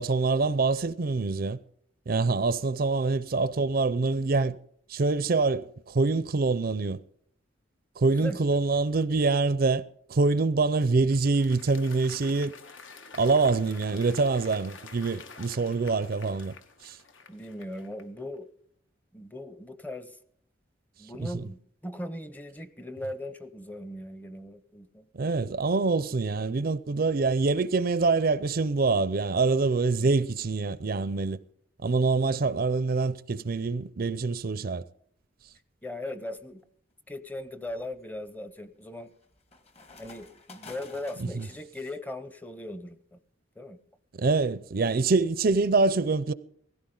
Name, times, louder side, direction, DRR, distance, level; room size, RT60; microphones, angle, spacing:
voice 1, 0.0-1.6 2.1-4.6 4.9-7.0 8.0-9.8 10.1-12.5 13.1-16.5 16.8-17.0 21.2-21.3 25.1-31.4 31.8-34.8 41.2-41.5 44.1-46.3, right 3 dB, 50° right, 0.5 m, -25 dB
Applause, 10.6-18.2, left 4 dB, 75° left, 1.5 m, -49 dB
voice 2, 17.3-18.5 19.1-20.2 21.0-25.1 30.0-30.1 35.8-36.6 37.1-39.1 40.0-43.2 43.6-43.8, left 1 dB, 10° left, 0.7 m, -39 dB
sound 1, 36.4-36.5 37.1-41.7, left 3 dB, 35° left, 1.4 m, -52 dB
17.5 x 16.0 x 3.8 m
head